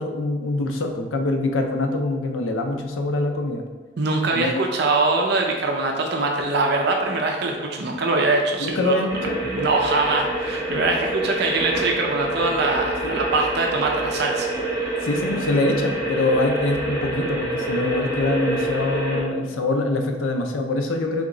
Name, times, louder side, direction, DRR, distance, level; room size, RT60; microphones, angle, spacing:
voice 1, 0.0-3.6 4.3-4.5 8.6-9.4 13.0-13.2 15.0-21.3, left 2 dB, 85° left, 4 dB, 0.5 m, -24 dB
voice 2, 4.0-8.9 9.2-14.5, right 3 dB, 55° right, 1 dB, 0.4 m, -23 dB
sound 1, 9.1-19.2, right 1 dB, 25° right, 1.3 m, -27 dB
3.5 x 3.0 x 3.7 m, 1.3 s
head